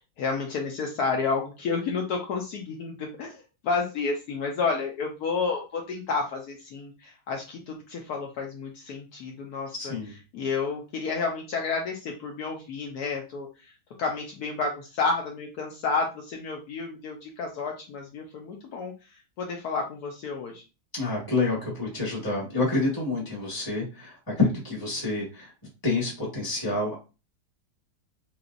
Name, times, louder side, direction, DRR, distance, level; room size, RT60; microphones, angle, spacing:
voice 1, 0.0-9.9 10.3-13.7 14.0-18.9 19.4-20.6, left 4 dB, 70° left, 1 dB, 1.1 m, -30 dB
voice 2, 9.7-10.1 20.9-25.5 25.8-26.9, left 3 dB, 15° left, -4 dB, 1.1 m, -28 dB
3.1 x 3.0 x 2.4 m, 0.31 s
omnidirectional pair, 1.8 m